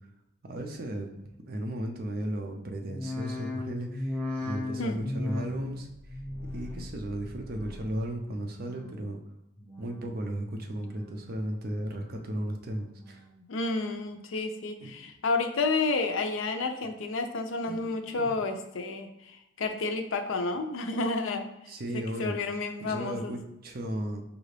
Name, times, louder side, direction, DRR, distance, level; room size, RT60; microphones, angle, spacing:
voice 1, 0.4-1.1 1.4-6.2 6.5-9.2 9.8-13.2 14.8-14.9 17.7-18.3 21.7-22.4 22.8-24.2, right 1 dB, 45° right, 3 dB, 0.5 m, -35 dB
sound 1, 2.8-8.2 8.5-9.1 9.6-10.2 10.7-11.3 11.8-12.4 12.9-13.5 14.0-14.1, left 2 dB, 5° left, 0.5 m, -38 dB
voice 2, 13.5-21.5 21.9-23.3, left 3 dB, 70° left, 7 dB, 0.5 m, -30 dB
5.3 x 2.4 x 3.2 m, 0.87 s
head